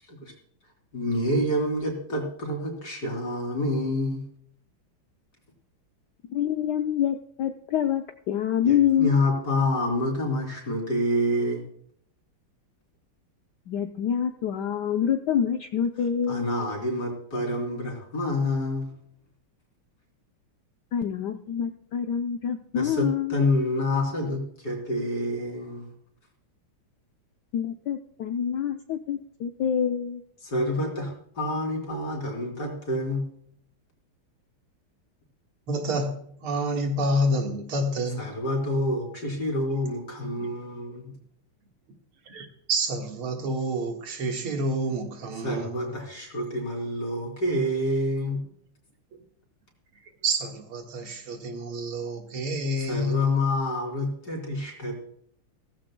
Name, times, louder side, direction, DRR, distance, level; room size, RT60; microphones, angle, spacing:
voice 1, 0.9-4.2 8.6-11.6 16.3-18.9 22.7-25.9 30.4-33.3 38.2-41.1 45.4-48.4 52.9-55.0, left 1 dB, 45° left, 2 dB, 3.8 m, -28 dB
voice 2, 6.3-9.1 13.7-16.5 20.9-23.4 27.5-30.2, left 9 dB, 65° left, 6 dB, 1.1 m, -26 dB
voice 3, 35.7-38.2 40.4-40.5 42.3-45.9 50.2-53.3, right 1 dB, 85° right, 3 dB, 2.6 m, -28 dB
16.5 x 15.0 x 2.3 m, 0.65 s
omnidirectional pair, 2.3 m